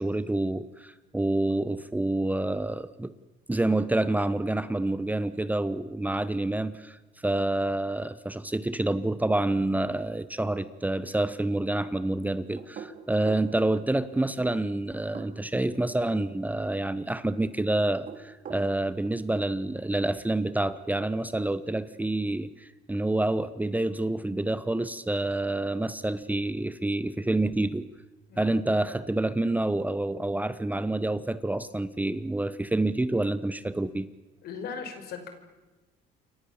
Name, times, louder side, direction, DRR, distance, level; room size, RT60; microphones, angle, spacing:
voice 1, 0.0-3.1 3.5-7.0 7.2-27.9 28.4-34.1, right 2 dB, 10° right, 14 dB, 1.0 m, -28 dB
sound 1, 12.6-13.5 15.0-15.7 17.9-18.7, right 7 dB, 55° right, 3.5 m, -42 dB
voice 2, 34.4-35.3, left 6 dB, 70° left, 7 dB, 5.2 m, -38 dB
28.5 x 24.0 x 7.3 m, 1.1 s
cardioid pair, 110°, 17 cm